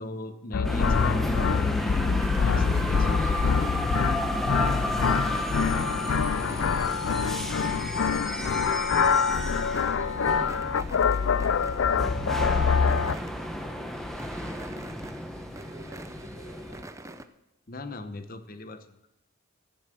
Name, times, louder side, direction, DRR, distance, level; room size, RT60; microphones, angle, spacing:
voice 1, 0.0-2.1 2.3-3.4 3.7-4.0 6.5-6.8 17.7-19.1, left 2 dB, 45° left, 10 dB, 1.0 m, -39 dB
sound 1, 0.5-13.1, left 6 dB, 70° left, 0.4 m, -25 dB
sound 2, 0.6-16.8, equal, ahead, 1.2 m, -33 dB
sound 3, 0.9-1.6 1.9-17.2, right 2 dB, 15° right, 0.6 m, -47 dB
voice 2, 11.5-14.1 14.5-17.2, equal, 40° right, -3 dB, 3.6 m, -51 dB
15.0 x 7.4 x 7.7 m, 0.91 s
head